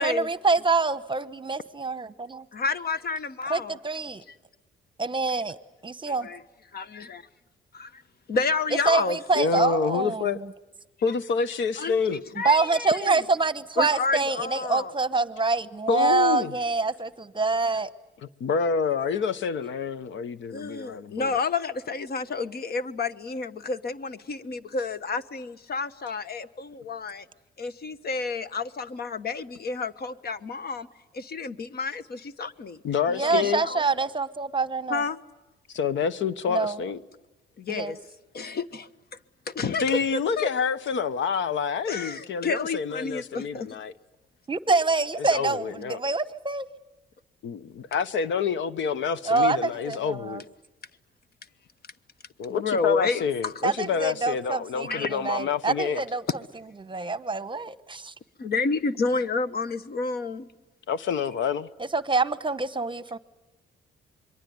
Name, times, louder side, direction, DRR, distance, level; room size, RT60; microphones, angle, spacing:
voice 1, 0.0-2.5 3.4-4.2 5.0-5.6 5.8-6.3 8.9-10.5 12.4-17.9 33.1-35.0 36.5-36.8 37.7-38.0 44.5-46.7 49.3-50.4 53.6-56.2 56.8-58.1 61.9-63.2, right 3 dB, 25° right, 1.0 m, -26 dB
voice 2, 2.5-3.8 5.3-5.4 6.0-6.4 6.7-7.2 7.7-8.0 8.3-9.2 11.8-13.2 13.8-14.9 20.5-27.2 27.6-30.9 31.1-32.8 33.2-33.8 34.9-35.2 37.6-38.0 38.3-38.9 39.5-40.5 41.9-43.7 52.5-53.5 54.8-55.1 58.4-60.5, left 4 dB, 50° left, 1.3 m, -30 dB
voice 3, 9.3-10.4 11.0-12.2 15.9-16.5 18.4-21.4 32.8-33.6 35.7-37.0 39.8-43.9 45.3-46.0 47.4-50.5 52.4-56.0 60.9-61.7, left 6 dB, 70° left, 1.0 m, -27 dB
26.5 x 22.5 x 9.5 m
cardioid pair, 90°, 20 cm